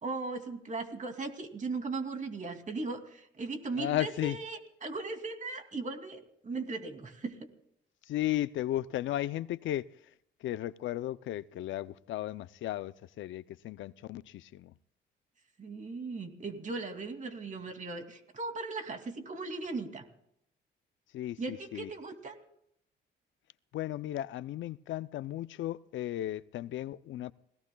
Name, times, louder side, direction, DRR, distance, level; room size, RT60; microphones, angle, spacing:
voice 1, 0.0-7.5 15.6-20.0 21.4-22.4, right 3 dB, 40° right, 2.6 m, -38 dB
voice 2, 3.8-4.4 8.1-9.9 10.4-14.7 21.1-21.9 23.7-27.3, left 13 dB, 75° left, 0.5 m, -35 dB
27.0 x 17.5 x 2.3 m
cardioid pair, 90°, 20 cm